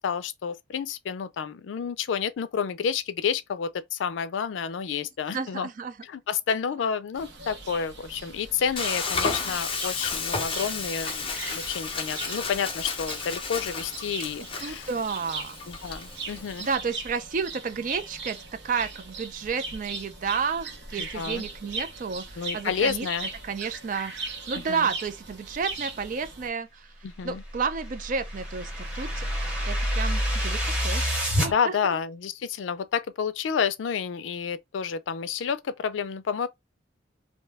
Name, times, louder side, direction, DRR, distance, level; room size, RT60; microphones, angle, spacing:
voice 1, 0.0-5.7 6.0-14.9 15.7-16.7 21.0-21.5 22.4-23.3 24.5-24.9 27.0-27.4 31.5-36.5, left 7 dB, 90° left, 0.4 m, -30 dB
voice 2, 5.3-5.9 14.6-15.6 16.6-18.4 18.6-23.1 23.4-24.1 24.5-26.9 27.2-29.3 29.6-31.1 31.4-31.5 31.8-32.0, right 5 dB, 45° right, 0.4 m, -31 dB
sound 1, 7.2-26.5, right 3 dB, 70° right, 0.9 m, -39 dB
Frying (food), 8.8-16.8, left 4 dB, 30° left, 0.5 m, -33 dB
sound 2, 27.5-31.5, equal, 5° right, 0.8 m, -27 dB
2.6 x 2.2 x 3.3 m
head